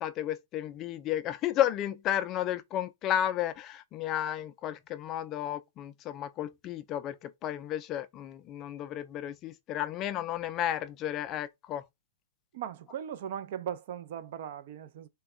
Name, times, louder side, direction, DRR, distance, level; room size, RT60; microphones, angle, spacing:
voice 1, 0.0-11.8, left 11 dB, 30° left, 0.3 m, -33 dB
voice 2, 12.5-15.1, right 9 dB, 55° right, 0.4 m, -38 dB
3.4 x 2.1 x 3.5 m
hypercardioid pair, 145°, 0 cm